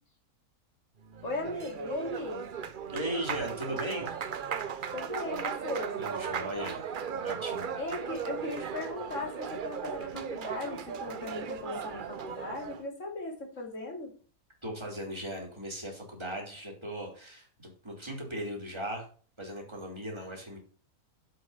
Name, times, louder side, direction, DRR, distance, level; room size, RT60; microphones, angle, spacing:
Applause, 1.0-12.9, right 7 dB, 50° right, 0.6 m, -37 dB
voice 1, 1.2-2.5 4.9-6.0 7.8-14.1, left 2 dB, 55° left, 0 dB, 3.0 m, -38 dB
voice 2, 2.9-4.1 6.0-7.7 14.6-19.1 19.4-20.6, right 1 dB, 15° right, 0 dB, 3.1 m, -38 dB
7.5 x 6.7 x 5.6 m, 0.41 s
omnidirectional pair, 1.6 m